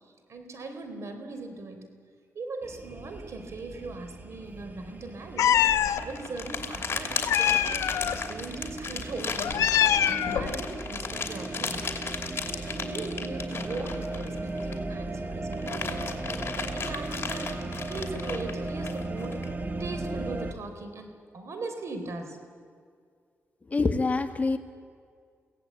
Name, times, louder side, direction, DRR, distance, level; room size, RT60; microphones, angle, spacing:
voice 1, 0.3-1.9 2.3-5.6 6.0-7.9 8.3-9.6 10.1-11.8 12.7-19.4 19.8-22.4, right 3 dB, 60° right, 6 dB, 3.7 m, -39 dB
sound 1, 2.6-20.5, right 2 dB, 35° right, 1.6 m, -37 dB
Meow, 5.4-6.0 7.3-8.2 9.4-10.5, left 10 dB, 90° left, 0.9 m, -24 dB
sound 2, 5.7-14.9 15.3-19.5, left 5 dB, 45° left, 2.8 m, -35 dB
voice 2, 23.7-24.6, left 3 dB, 30° left, 7 dB, 1.6 m, -25 dB
23.5 x 17.0 x 8.6 m, 2.1 s
cardioid pair, 75°, 5 cm